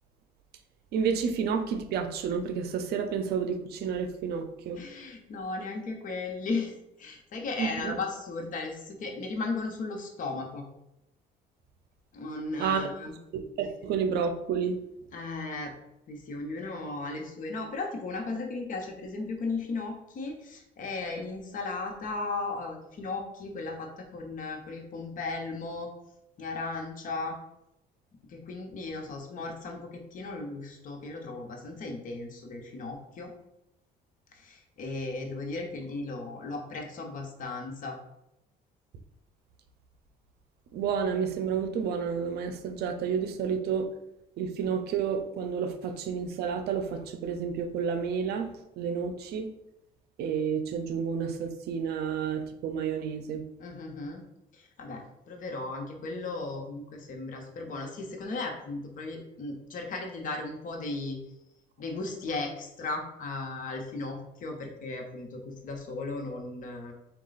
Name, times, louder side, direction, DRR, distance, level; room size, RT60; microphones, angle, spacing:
voice 1, 0.9-4.8 7.6-8.0 12.6-12.8 13.3-14.8 40.7-43.9 44.4-49.5 50.2-53.4, right 6 dB, 70° right, 7 dB, 0.5 m, -30 dB
voice 2, 4.8-10.7 12.1-13.1 15.1-15.7 16.1-25.9 26.4-27.4 28.3-33.3 34.3-38.0 53.6-54.2 54.5-61.2 61.8-66.9, left 3 dB, 50° left, 2 dB, 0.9 m, -36 dB
4.1 x 2.3 x 3.9 m, 0.86 s
cardioid pair, 110°, 17 cm